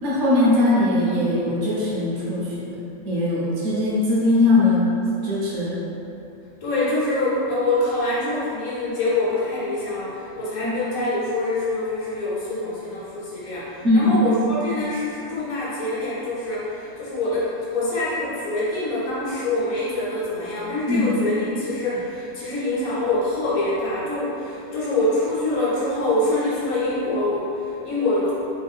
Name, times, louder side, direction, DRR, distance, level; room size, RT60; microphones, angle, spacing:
voice 1, 0.0-2.8 3.0-4.8 5.2-5.8 10.6-10.7 13.8-14.1 20.9-21.1, left 2 dB, 60° right, -7 dB, 1.1 m, -20 dB
voice 2, 6.6-28.3, left 2 dB, 85° left, -8 dB, 1.2 m, -25 dB
3.4 x 2.2 x 3.5 m, 2.7 s
omnidirectional pair, 1.4 m